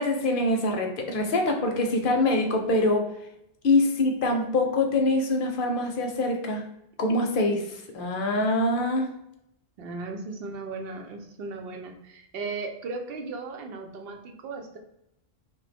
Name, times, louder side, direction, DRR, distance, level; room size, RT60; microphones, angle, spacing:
voice 1, 0.0-3.0 3.6-6.6 7.0-9.1, left 2 dB, 65° left, 3 dB, 0.7 m, -24 dB
voice 2, 9.8-14.8, right 3 dB, 75° right, 3 dB, 0.8 m, -36 dB
3.1 x 2.1 x 3.2 m, 0.82 s
omnidirectional pair, 1.0 m